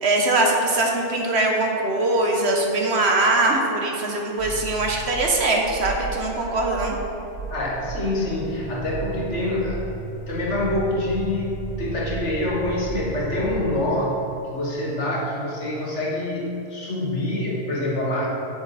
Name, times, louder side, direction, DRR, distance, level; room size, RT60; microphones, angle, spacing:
voice 1, 0.0-7.0, right 2 dB, 60° right, 1 dB, 1.2 m, -22 dB
sound 1, 4.4-13.7, right 4 dB, 45° left, 2.1 m, -34 dB
voice 2, 7.5-9.9 10.3-18.3, left 1 dB, 65° left, -3 dB, 1.8 m, -26 dB
8.6 x 7.1 x 4.1 m, 3.0 s
omnidirectional pair, 1.3 m